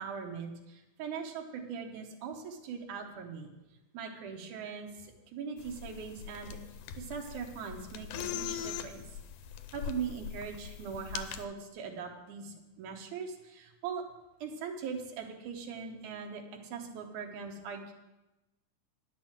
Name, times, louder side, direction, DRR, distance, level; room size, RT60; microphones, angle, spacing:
voice 1, 0.0-3.5 3.9-6.6 6.9-9.0 9.7-14.0 14.4-17.9, right 6 dB, 75° right, 1 dB, 2.6 m, -40 dB
sound 1, 5.6-11.5, left 9 dB, 80° left, 2.1 m, -41 dB
10.0 x 6.2 x 7.3 m, 1.0 s
omnidirectional pair, 3.6 m